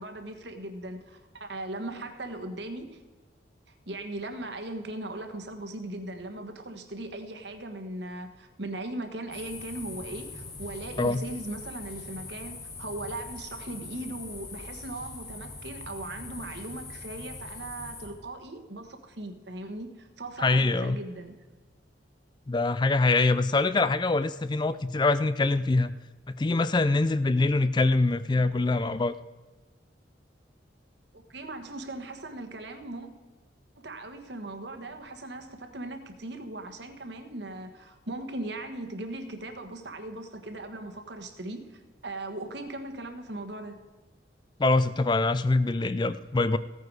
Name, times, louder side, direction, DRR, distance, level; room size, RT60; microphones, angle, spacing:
voice 1, 0.0-3.0 3.7-21.3 31.1-33.1 33.8-43.8, right 2 dB, 65° right, 6 dB, 1.4 m, -39 dB
sound 1, 9.3-18.1, left 3 dB, 55° left, 3.3 m, -42 dB
voice 2, 20.4-21.0 22.5-25.9 26.4-29.2 44.6-46.6, left 3 dB, 25° left, 13 dB, 0.3 m, -24 dB
16.0 x 9.3 x 4.8 m, 1.3 s
head